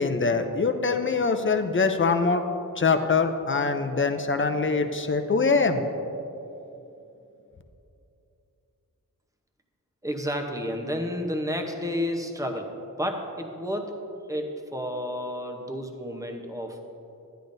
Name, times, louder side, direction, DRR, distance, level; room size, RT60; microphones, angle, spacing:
voice 1, 0.0-2.4 2.8-5.9, left 4 dB, 35° left, 7 dB, 0.6 m, -23 dB
voice 2, 10.0-12.7 13.0-14.0 14.3-16.8, equal, 10° right, 3 dB, 0.8 m, -31 dB
12.0 x 10.0 x 2.7 m, 2.8 s
wide cardioid pair, 95°, 34 cm